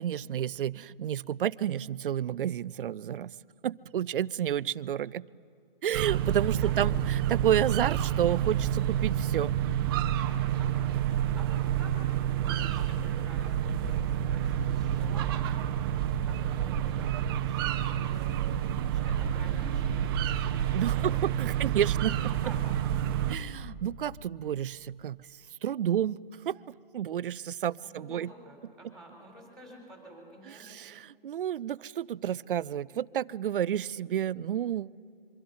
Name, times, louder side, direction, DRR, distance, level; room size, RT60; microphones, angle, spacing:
voice 1, 0.0-3.3 3.6-5.3 5.8-9.5 20.7-22.3 23.3-25.2 25.6-26.6 26.9-28.3 30.5-35.0, right 10 dB, 65° right, 0.5 m, -30 dB
sound 1, 5.9-23.4, right 10 dB, 25° right, 0.7 m, -29 dB
voice 2, 10.6-15.7 15.9-18.4 18.9-21.0 21.3-21.8 22.1-23.0 27.8-30.6, right 1 dB, ahead, 4.4 m, -50 dB
25.5 x 24.0 x 5.5 m
hypercardioid pair, 150°, 29 cm